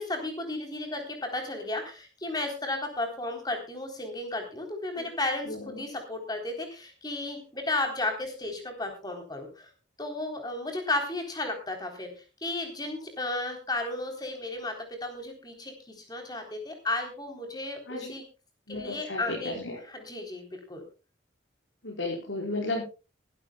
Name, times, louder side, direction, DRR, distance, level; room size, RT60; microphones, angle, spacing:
voice 1, 0.0-9.7 10.0-12.1 12.4-17.8 18.1-18.2 18.7-19.6 19.9-20.8, left 2 dB, 20° left, 4 dB, 3.8 m, -33 dB
voice 2, 5.4-5.8 17.9-18.1 18.7-19.8 21.8-22.8, left 2 dB, 85° left, -3 dB, 5.1 m, -34 dB
23.0 x 13.0 x 2.3 m, 0.32 s
head